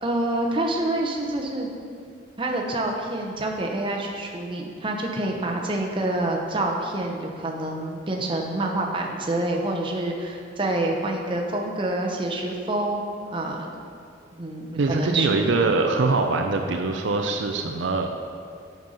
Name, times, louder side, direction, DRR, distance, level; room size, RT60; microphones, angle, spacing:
voice 1, 0.0-1.7 2.4-13.7 14.3-15.5, right 2 dB, 25° right, 0 dB, 0.8 m, -27 dB
voice 2, 14.8-18.1, right 3 dB, 70° right, 4 dB, 0.5 m, -23 dB
7.9 x 5.3 x 5.4 m, 2.3 s
head